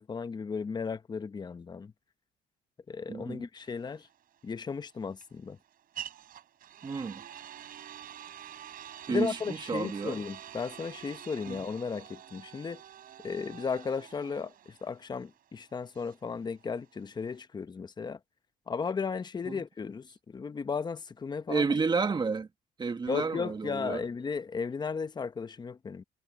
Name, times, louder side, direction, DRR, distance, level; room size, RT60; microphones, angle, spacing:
voice 1, 0.0-1.9 2.9-4.1 4.4-5.6 9.1-12.8 13.2-18.2 18.7-21.6 23.1-26.0, left 5 dB, 25° left, 1.0 m, -35 dB
voice 2, 3.1-3.5 6.8-7.2 9.1-10.2 11.5-11.6 19.5-19.6 21.5-22.5 22.8-24.0, right 4 dB, 25° right, 1.7 m, -31 dB
sound 1, 3.6-17.4, right 10 dB, 60° right, 6.6 m, -47 dB
cardioid pair, 110°, 17 cm